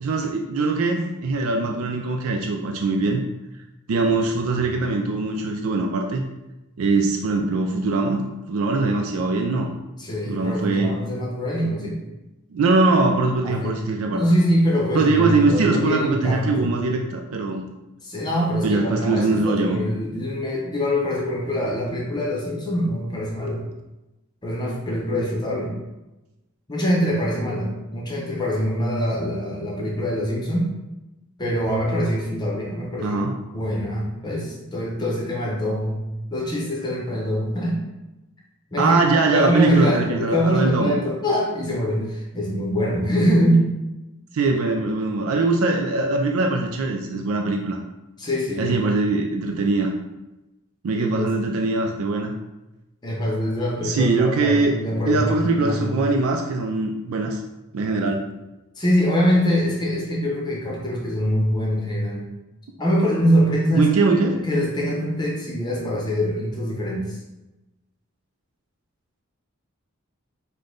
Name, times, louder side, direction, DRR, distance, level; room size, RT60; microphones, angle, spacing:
voice 1, 0.0-3.2 3.9-6.2 6.8-9.7 10.3-11.0 12.5-14.2 14.9-17.6 18.6-19.8 33.0-33.4 38.8-41.0 44.3-47.8 48.6-49.9 50.8-52.3 53.8-54.7 55.1-57.4 57.7-58.3 63.8-64.4, right 3 dB, 80° right, 3 dB, 0.4 m, -22 dB
voice 2, 10.0-12.0 13.4-13.8 14.1-16.7 18.0-23.6 24.4-25.8 26.7-30.7 31.4-33.3 33.5-36.0 36.3-37.8 38.7-43.7 48.2-48.8 51.0-51.3 53.0-56.0 58.8-62.3 62.8-64.0 64.5-67.2, equal, 20° left, -3 dB, 0.8 m, -24 dB
5.2 x 2.2 x 3.8 m, 1.0 s
head